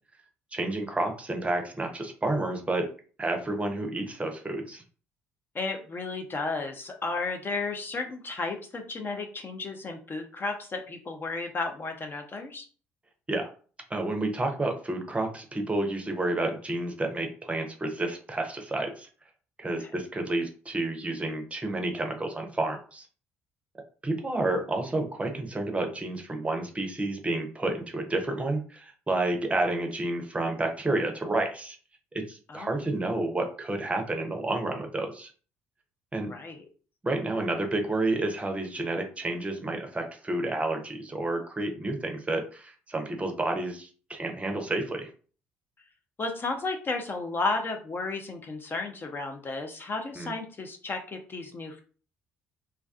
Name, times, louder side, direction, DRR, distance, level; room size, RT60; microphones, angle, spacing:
voice 1, 0.5-2.9 3.2-4.8 13.3-13.5 13.9-19.1 19.6-23.1 24.0-31.8 32.1-35.3 36.1-36.3 37.0-45.1 50.2-50.3, right 2 dB, 20° right, 4 dB, 0.6 m, -30 dB
voice 2, 5.5-12.7 19.8-19.9 32.5-32.7 36.3-36.6 46.2-51.8, left 3 dB, 35° left, 4 dB, 0.4 m, -33 dB
2.3 x 2.3 x 2.4 m, 0.40 s
figure-of-eight pair, 50°, 7 cm